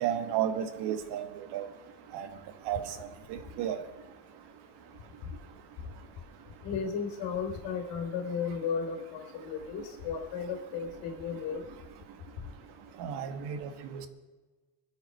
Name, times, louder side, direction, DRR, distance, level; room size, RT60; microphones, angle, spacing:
voice 1, 0.0-1.2 1.5-1.6 2.1-2.3 2.7-2.8 3.6-3.8 13.0-14.1, right 10 dB, 60° right, 8 dB, 1.7 m, -32 dB
voice 2, 6.6-11.6, left 6 dB, 65° left, 4 dB, 3.7 m, -34 dB
23.0 x 8.3 x 5.5 m, 1.3 s
supercardioid pair, 120°, 45 cm